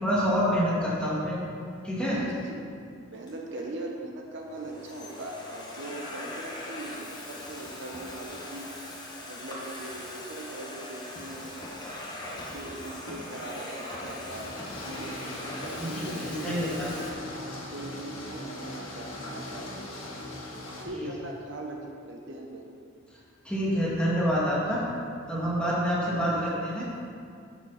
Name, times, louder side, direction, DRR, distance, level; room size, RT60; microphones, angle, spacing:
voice 1, 0.0-1.4 1.8-2.2 12.4-12.6 15.8-16.9 20.9-21.1 23.4-24.8 25.3-26.8, equal, 5° left, -8 dB, 2.2 m, -27 dB
voice 2, 2.1-2.6 3.1-8.7 9.3-11.5 12.3-16.7 17.4-20.2 20.8-22.7 26.0-26.6, right 2 dB, 60° right, 0 dB, 0.9 m, -40 dB
Domestic sounds home sounds, 3.3-3.7 4.4-17.1, left 1 dB, 20° left, 1.3 m, -41 dB
sound 1, 14.3-20.9, left 1 dB, 75° left, 1.8 m, -39 dB
10.0 x 6.8 x 4.2 m, 2.4 s
head